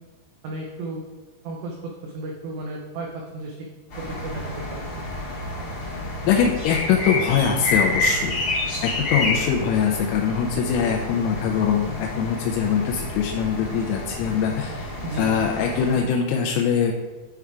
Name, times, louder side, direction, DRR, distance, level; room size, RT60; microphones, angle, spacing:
voice 1, 0.4-1.1 1.4-3.7 4.0-4.9 15.0-15.3, right 2 dB, 90° right, -1 dB, 2.4 m, -34 dB
sound 1, 3.9-16.0, left 2 dB, 55° left, 1.0 m, -29 dB
voice 2, 6.2-8.4 8.8-16.9, left 7 dB, 85° left, 0 dB, 3.3 m, -23 dB
9.4 x 3.6 x 4.6 m, 1.2 s
omnidirectional pair, 6.0 m